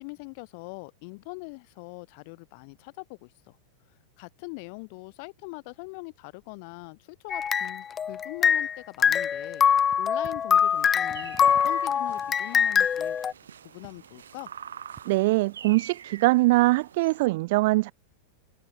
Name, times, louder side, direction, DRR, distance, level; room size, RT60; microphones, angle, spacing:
voice 1, 0.0-3.6 4.2-9.6 10.0-13.2 13.6-14.5, left 32 dB, 45° left, 5.7 m, -42 dB
sound 1, 7.3-8.8 9.0-13.3, left 8 dB, 20° left, 0.9 m, -23 dB
sound 2, 9.6-9.7 9.8-10.5 11.1-12.4 12.8-12.9 13.8-14.1 15.0-15.3, right 11 dB, 30° right, 5.4 m, -51 dB
sound 3, 10.6-17.3, right 8 dB, 65° right, 5.1 m, -46 dB
voice 2, 15.1-17.9, right 21 dB, 50° right, 0.5 m, -22 dB
figure-of-eight pair, 90°, 0 cm